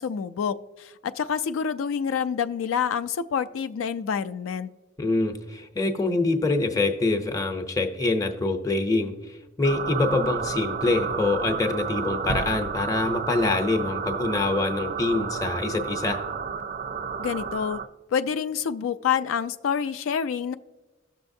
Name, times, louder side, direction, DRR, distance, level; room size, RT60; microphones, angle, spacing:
voice 1, 0.0-4.7 17.2-17.8 18.1-20.5, left 7 dB, 85° left, 11 dB, 0.3 m, -27 dB
voice 2, 5.0-16.2, left 2 dB, 20° left, 4 dB, 0.6 m, -25 dB
sound 1, 9.6-17.9, right 6 dB, 40° right, 0.4 m, -31 dB
sound 2, 12.3-14.4, right 2 dB, 90° right, 0.6 m, -37 dB
17.0 x 6.4 x 2.6 m, 1.2 s
head